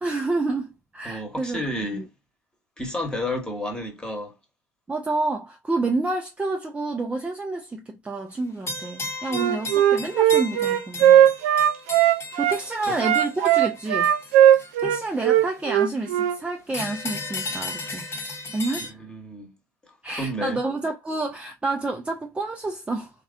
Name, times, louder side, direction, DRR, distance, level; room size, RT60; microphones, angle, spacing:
voice 1, 0.0-1.6 1.9-2.1 4.9-11.3 12.4-14.1 14.8-18.1 18.5-18.9 20.0-23.1, right 2 dB, 15° right, 0.5 m, -29 dB
voice 2, 1.0-2.1 2.8-4.3 12.9-13.0 19.1-19.5 20.1-20.6, left 1 dB, 10° left, 1.2 m, -31 dB
sound 1, 8.7-15.4 16.7-18.9, left 3 dB, 25° left, 0.9 m, -35 dB
Wind instrument woodwind instrument, 9.3-12.6 13.0-16.4, right 11 dB, 65° right, 0.4 m, -18 dB
3.1 x 2.5 x 2.5 m
hypercardioid pair, 70°, 9 cm